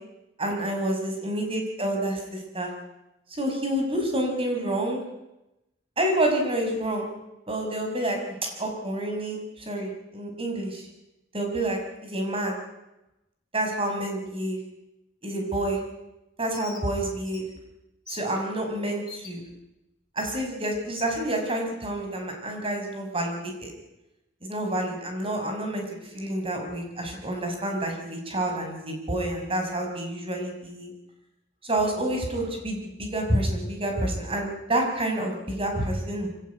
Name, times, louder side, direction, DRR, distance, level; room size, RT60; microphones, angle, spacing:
voice 1, 0.4-2.7 3.3-5.0 6.0-7.1 7.5-10.9 11.3-12.6 13.5-14.6 15.2-15.8 16.4-17.4 18.1-19.4 20.2-23.7 24.4-30.9 31.6-36.3, right 1 dB, 30° right, 3 dB, 5.9 m, -28 dB
Bird, 16.5-16.8 17.3-17.4 18.1-18.2 19.1-19.3 20.2-20.3 21.0-21.1, left 6 dB, 25° left, 4.5 m, -43 dB
24.0 x 17.0 x 9.4 m, 0.93 s
head